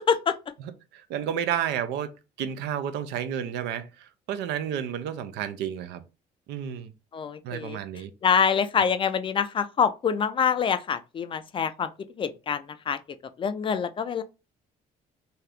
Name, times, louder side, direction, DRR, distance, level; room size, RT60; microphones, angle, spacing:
voice 1, 0.6-6.0 6.5-6.9 7.4-8.1, right 9 dB, 85° right, 0.5 m, -31 dB
voice 2, 7.1-7.8 8.2-11.9 12.2-13.0 13.4-14.2, left 7 dB, 30° left, 0.3 m, -25 dB
2.7 x 2.4 x 3.3 m
cardioid pair, 110°, 17 cm